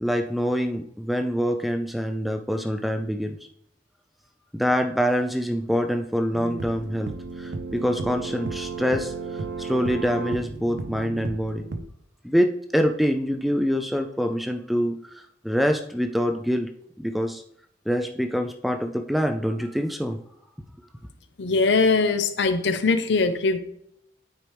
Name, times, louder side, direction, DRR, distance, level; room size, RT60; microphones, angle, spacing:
voice 1, 0.0-3.4 4.5-7.1 7.4-11.7 12.2-16.7 17.0-17.4 17.9-20.2, equal, ahead, 6 dB, 0.3 m, -25 dB
sound 1, 6.3-11.8, right 3 dB, 70° right, 0.5 m, -33 dB
voice 2, 21.4-23.6, left 4 dB, 75° left, 10 dB, 0.6 m, -21 dB
9.1 x 4.5 x 3.3 m, 0.75 s
head